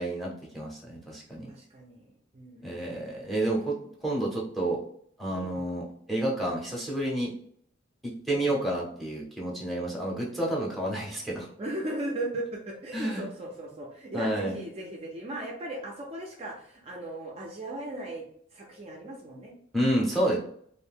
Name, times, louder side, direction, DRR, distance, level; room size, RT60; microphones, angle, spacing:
voice 1, 0.0-1.5 2.6-3.7 4.0-4.8 5.2-7.3 8.0-11.5 12.9-13.3 14.1-14.6 19.7-20.4, right 1 dB, ahead, -3 dB, 0.7 m, -30 dB
voice 2, 1.5-2.1 2.3-2.9 5.3-5.6 8.3-8.5 11.6-18.2 18.5-19.5, right 1 dB, 30° right, -1 dB, 0.4 m, -37 dB
2.5 x 2.1 x 3.4 m, 0.64 s
head